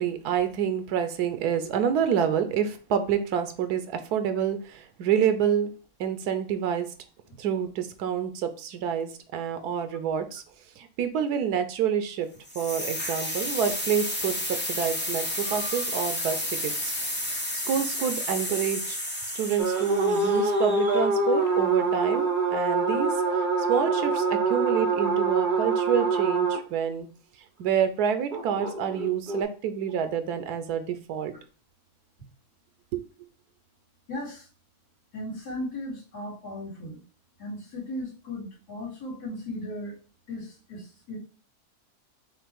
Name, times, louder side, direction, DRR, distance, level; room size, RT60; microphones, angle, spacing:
voice 1, 0.0-5.7 6.0-6.9 7.4-10.4 10.8-12.3 12.5-16.9 17.6-19.0 19.4-23.1 23.7-27.1 27.6-31.3 32.9-33.0, right 8 dB, 85° right, 9 dB, 1.2 m, -28 dB
sound 1, 12.5-21.3, left 1 dB, 10° left, 0.6 m, -32 dB
sound 2, 19.6-26.6 28.3-29.4, right 3 dB, 45° right, 0.7 m, -25 dB
voice 2, 34.1-34.5 35.1-37.0 37.4-40.0 40.3-41.2, left 1 dB, 85° left, -6 dB, 2.7 m, -36 dB
5.7 x 2.6 x 3.5 m, 0.37 s
omnidirectional pair, 1.6 m